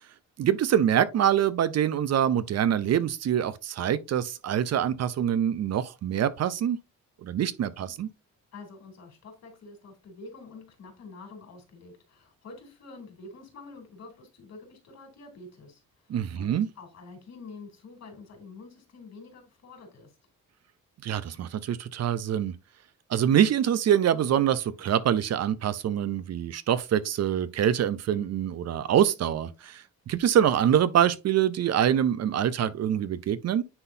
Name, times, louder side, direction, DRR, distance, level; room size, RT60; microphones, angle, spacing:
voice 1, 0.4-6.8 7.2-8.1 16.1-16.7 21.0-22.5 23.1-33.6, right 9 dB, 55° right, 0.7 m, -25 dB
voice 2, 8.5-20.1, left 3 dB, 60° left, 3.6 m, -47 dB
9.8 x 3.9 x 2.7 m
cardioid pair, 90°, 30 cm